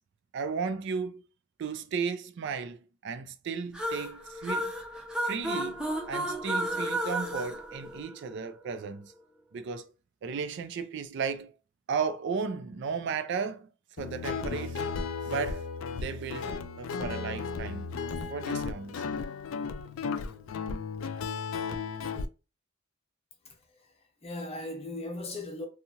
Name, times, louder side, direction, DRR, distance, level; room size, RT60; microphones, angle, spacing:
voice 1, 0.3-1.2 1.6-4.7 5.2-9.1 9.5-9.9 10.2-11.5 11.9-13.7 14.0-14.8 15.2-15.7 16.0-17.9 18.3-19.1, right 5 dB, 60° right, 0.4 m, -35 dB
sound 1, 3.7-8.5, right 1 dB, 5° right, 0.5 m, -33 dB
Guitar, 14.0-22.3, left 5 dB, 90° left, 0.3 m, -34 dB
voice 2, 23.4-25.7, left 2 dB, 30° left, 0.7 m, -39 dB
2.7 x 2.4 x 2.8 m
head